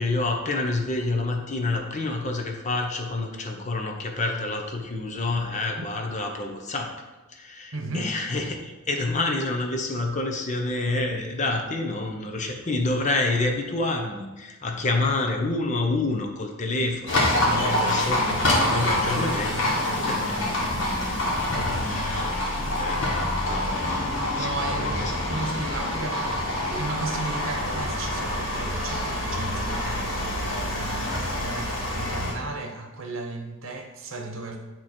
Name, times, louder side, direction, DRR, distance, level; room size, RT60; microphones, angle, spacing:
voice 1, 0.0-6.9 7.3-18.2 18.7-19.5 20.0-20.1 21.9-22.3 22.8-23.1 23.5-25.1 25.5-25.6, left 2 dB, 35° left, 3 dB, 0.8 m, -28 dB
voice 2, 7.7-8.2 17.5-20.9 21.7-22.0 24.3-34.6, right 2 dB, 80° right, 3 dB, 0.9 m, -34 dB
Livestock farm animals working animals, 17.1-32.3, left 1 dB, 70° left, 1.5 m, -26 dB
9.0 x 3.0 x 4.3 m, 1.1 s
head